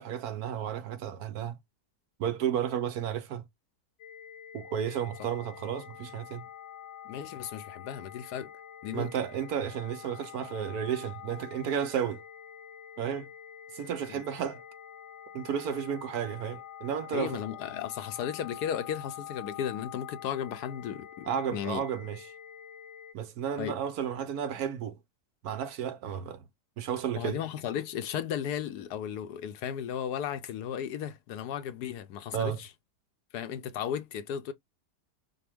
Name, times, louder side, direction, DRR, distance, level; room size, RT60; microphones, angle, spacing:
voice 1, 0.0-1.6 2.2-3.4 4.5-6.4 8.9-12.2 13.0-13.3 13.7-14.6 15.3-17.4 21.2-22.2 23.1-25.0 25.4-26.4 26.8-27.4 32.3-32.6, right 8 dB, 65° right, 1.1 m, -32 dB
sound 1, 4.0-23.1, left 10 dB, 55° left, 0.9 m, -46 dB
voice 2, 7.0-8.5 8.8-9.1 14.1-14.2 17.1-21.8 23.6-23.8 27.2-32.7 33.3-34.5, left 9 dB, 75° left, 1.2 m, -35 dB
5.9 x 2.3 x 3.4 m
omnidirectional pair, 1.9 m